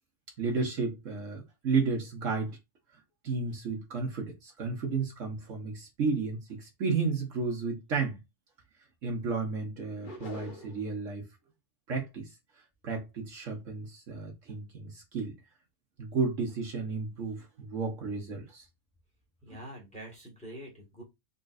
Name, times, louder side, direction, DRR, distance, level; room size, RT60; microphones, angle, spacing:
voice 1, 0.4-2.6 3.2-8.2 9.0-11.3 11.9-12.3 12.8-15.3 16.0-18.6 19.5-19.6, right 4 dB, 60° right, 1.3 m, -32 dB
sound 1, 10.0-10.9, left 2 dB, 40° left, 1.0 m, -44 dB
voice 2, 19.4-21.0, right 1 dB, 5° left, 1.6 m, -45 dB
3.9 x 3.5 x 2.4 m
omnidirectional pair, 1.5 m